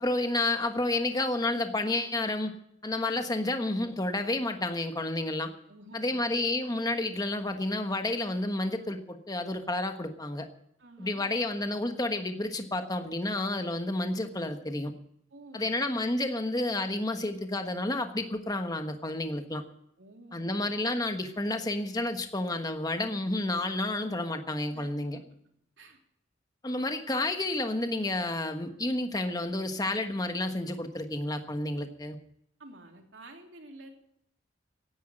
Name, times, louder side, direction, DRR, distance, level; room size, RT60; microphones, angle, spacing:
voice 1, 0.0-2.5 2.8-5.5 5.9-10.5 11.0-14.9 15.5-19.6 20.3-25.2 26.6-32.2, left 2 dB, 20° left, 6 dB, 1.3 m, -30 dB
voice 2, 5.7-6.3 10.8-11.2 15.3-15.8 20.0-20.7 24.7-25.2 25.8-26.0 32.6-33.9, right 2 dB, 70° right, 2 dB, 3.2 m, -50 dB
16.5 x 10.0 x 6.4 m, 0.73 s
head